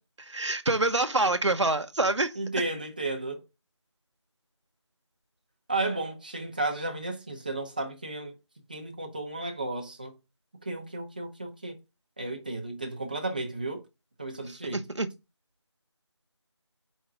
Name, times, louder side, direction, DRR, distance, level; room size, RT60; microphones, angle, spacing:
voice 1, 0.3-2.3 14.7-15.1, right 2 dB, 80° right, 1.0 m, -26 dB
voice 2, 2.4-3.4 5.7-8.3 8.7-10.1 10.6-11.7 12.2-13.8 14.2-14.8, right 2 dB, 20° right, 0.8 m, -33 dB
4.8 x 4.6 x 6.1 m
figure-of-eight pair, 170°, 15 cm